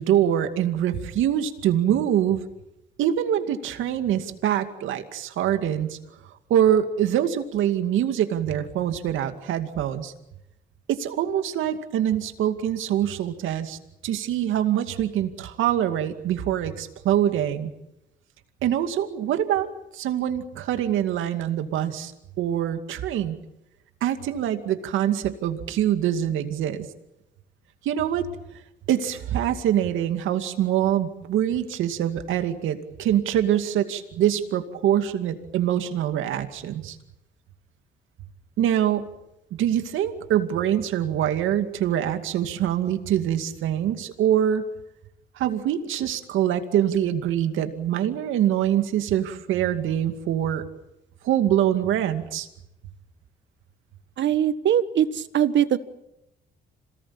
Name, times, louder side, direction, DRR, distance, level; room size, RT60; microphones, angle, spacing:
voice 1, 0.0-2.4 3.0-6.0 6.5-10.1 10.9-17.7 18.6-19.7 19.9-22.1 22.4-23.4 24.0-26.9 27.8-28.2 28.9-37.0 38.6-39.1 39.5-44.6 45.4-50.6 51.2-52.5, right 10 dB, 85° right, 7 dB, 2.3 m, -24 dB
voice 2, 54.2-55.8, right 10 dB, 65° right, 12 dB, 1.5 m, -21 dB
27.0 x 19.0 x 8.8 m, 0.89 s
cardioid pair, 90°, 20 cm